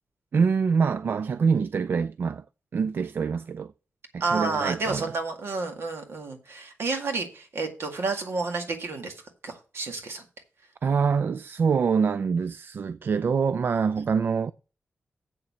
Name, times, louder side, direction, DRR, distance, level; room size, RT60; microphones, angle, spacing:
voice 1, 0.3-2.4 2.7-3.7 4.1-5.1 10.8-14.5, right 5 dB, 60° right, 0.4 m, -25 dB
voice 2, 4.2-9.1 9.4-10.2 14.0-14.1, right 3 dB, 75° right, 2.0 m, -30 dB
7.8 x 6.9 x 6.1 m
wide cardioid pair, 150°, 4 cm